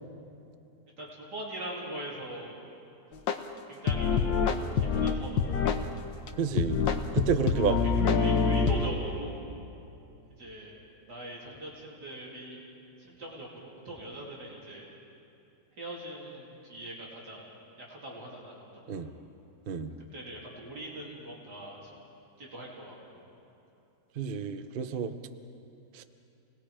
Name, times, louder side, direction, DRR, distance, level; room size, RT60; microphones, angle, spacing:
voice 1, 1.0-2.6 3.7-4.4 4.8-5.8 7.7-9.3 10.4-10.8 11.1-12.6 13.0-14.9 15.8-17.6 17.9-19.0 20.1-21.9 22.4-23.3, right 1 dB, 55° right, -5 dB, 3.6 m, -42 dB
sound 1, 3.3-3.4 3.9-5.8 6.3-6.4 6.6-8.9, left 5 dB, 75° left, 1.6 m, -26 dB
voice 2, 6.4-6.9 7.1-7.8 18.9-19.1 19.7-19.9 24.2-25.1 25.9-26.0, right 6 dB, 85° right, 9 dB, 0.4 m, -30 dB
28.0 x 20.0 x 5.0 m, 2.8 s
omnidirectional pair, 2.1 m